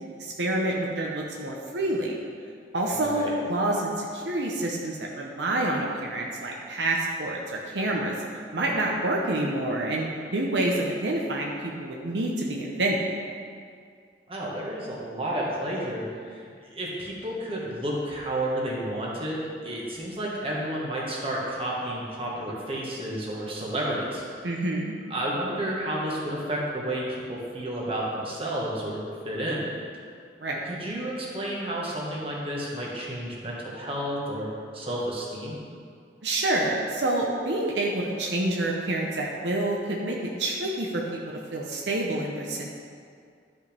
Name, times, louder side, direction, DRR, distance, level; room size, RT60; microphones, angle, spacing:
voice 1, 0.2-2.2 2.7-8.1 8.5-13.0 24.4-24.9 30.4-30.6 36.2-41.0 41.5-42.7, right 1 dB, 75° right, -1 dB, 0.9 m, -27 dB
voice 2, 2.9-3.3 14.3-24.2 25.1-29.7 30.6-35.6, right 1 dB, 35° right, -4 dB, 1.6 m, -31 dB
12.0 x 5.6 x 3.4 m, 2.2 s
head